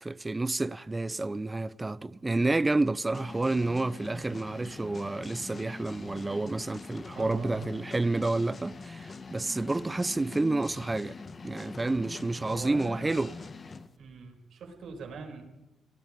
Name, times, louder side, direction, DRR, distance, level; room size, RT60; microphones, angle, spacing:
voice 1, 0.0-11.2 11.4-13.3, right 2 dB, 20° right, 0.7 m, -29 dB
sound 1, 3.1-13.9, left 4 dB, 35° left, 1.4 m, -44 dB
voice 2, 7.1-7.7 12.4-13.5 14.0-15.4, right 5 dB, 65° right, 7.4 m, -42 dB
28.0 x 20.0 x 5.3 m
cardioid pair, 90°, 0 cm